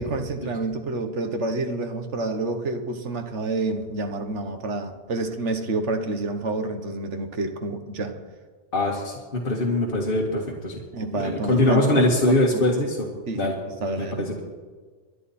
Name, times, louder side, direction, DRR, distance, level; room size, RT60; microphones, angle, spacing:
voice 1, 0.0-8.2 10.9-12.6 13.3-13.4 13.8-14.3, right 2 dB, 75° right, 6 dB, 1.6 m, -28 dB
voice 2, 8.7-10.8 11.1-13.1 13.3-13.5 14.0-14.4, left 1 dB, 50° left, -2 dB, 1.9 m, -22 dB
24.0 x 11.0 x 4.3 m, 1.4 s
omnidirectional pair, 1.2 m